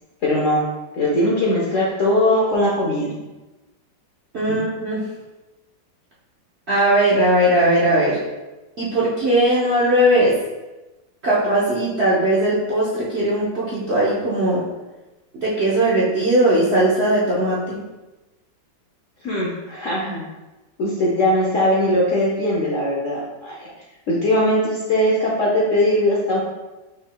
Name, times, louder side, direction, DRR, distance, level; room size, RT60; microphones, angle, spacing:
voice 1, 0.2-0.6 0.9-3.1 4.5-4.6 19.2-20.2 20.8-23.7 24.1-26.4, left 1 dB, 60° left, -4 dB, 0.8 m, -20 dB
voice 2, 4.3-5.0 6.7-8.2 8.8-10.4 11.2-14.6 15.3-17.8, right 1 dB, 50° right, -8 dB, 0.8 m, -19 dB
5.3 x 4.3 x 2.2 m, 1.1 s
omnidirectional pair, 2.1 m